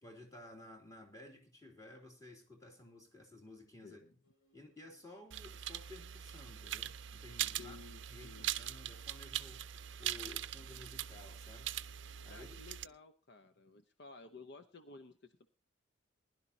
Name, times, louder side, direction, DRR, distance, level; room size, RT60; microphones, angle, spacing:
voice 1, 0.0-4.0 4.5-7.8 8.1-9.6 10.0-11.7 12.2-12.6, left 2 dB, 15° left, 2 dB, 2.7 m, -54 dB
voice 2, 3.8-4.1 7.6-8.5 12.3-15.5, left 4 dB, 60° left, 9 dB, 0.8 m, -55 dB
sound 1, 4.2-13.0, right 1 dB, 90° left, 3.2 m, -71 dB
sound 2, 5.3-12.9, right 12 dB, 65° right, 0.5 m, -42 dB
20.5 x 11.5 x 2.8 m, 0.33 s
head